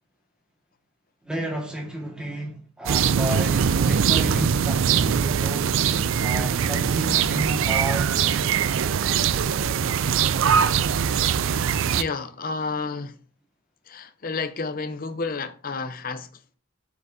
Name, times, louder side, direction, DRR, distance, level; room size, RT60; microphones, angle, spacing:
voice 1, 1.2-5.7 6.2-8.1, right 1 dB, 5° right, 1.7 m, -32 dB
sound 1, 2.9-12.0, right 7 dB, 65° right, 0.4 m, -22 dB
voice 2, 11.8-13.2 13.8-16.4, left 4 dB, 40° left, 0.6 m, -31 dB
7.6 x 5.9 x 2.7 m
head